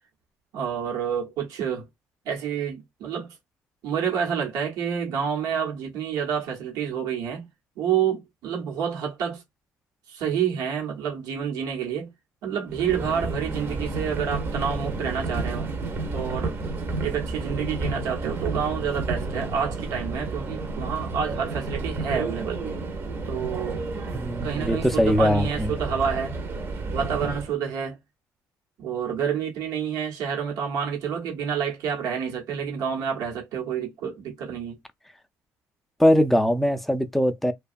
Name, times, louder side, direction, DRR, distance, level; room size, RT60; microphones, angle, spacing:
voice 1, 0.5-1.9 2.2-3.3 3.8-7.5 7.8-9.4 10.1-12.1 12.4-15.7 16.1-16.6 17.0-22.6 23.3-23.9 24.4-26.4 26.9-28.0 28.8-34.8, right 7 dB, 85° right, 1.0 m, -28 dB
Subway metro underground, 12.7-27.5, right 3 dB, 40° right, 0.6 m, -31 dB
voice 2, 24.1-25.7 36.0-37.5, equal, ahead, 0.3 m, -21 dB
2.7 x 2.2 x 2.5 m
cardioid pair, 125°, 6 cm